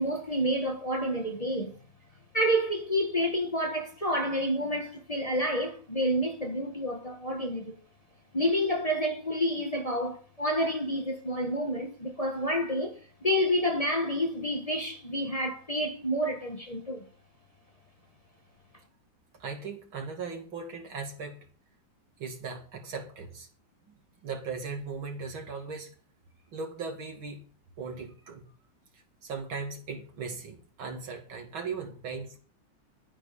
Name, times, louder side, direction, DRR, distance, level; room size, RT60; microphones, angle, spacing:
voice 1, 0.0-1.8 2.3-7.8 8.3-17.0, equal, 20° left, 1.5 m, -29 dB
voice 2, 19.4-21.4 22.2-23.5 23.9-25.9 26.5-27.4 27.8-28.4 28.9-32.4, right 4 dB, 85° right, 3.2 m, -38 dB
12.0 x 9.3 x 5.2 m
omnidirectional pair, 2.1 m